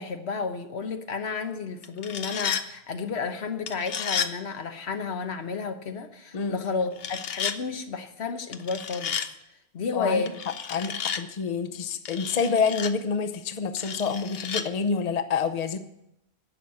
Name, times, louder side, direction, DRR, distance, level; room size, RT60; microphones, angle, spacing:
voice 1, 0.0-9.3 9.7-10.3, left 4 dB, 85° left, 6 dB, 1.3 m, -31 dB
sound 1, 1.8-2.6 3.7-4.3 7.0-7.6 8.5-9.3 10.3-11.2 12.0-12.9 13.8-14.6, left 7 dB, 70° left, 0.9 m, -32 dB
voice 2, 9.9-10.3 10.7-15.8, left 5 dB, 40° left, 8 dB, 0.8 m, -27 dB
11.0 x 7.1 x 7.6 m, 0.83 s
omnidirectional pair, 1.1 m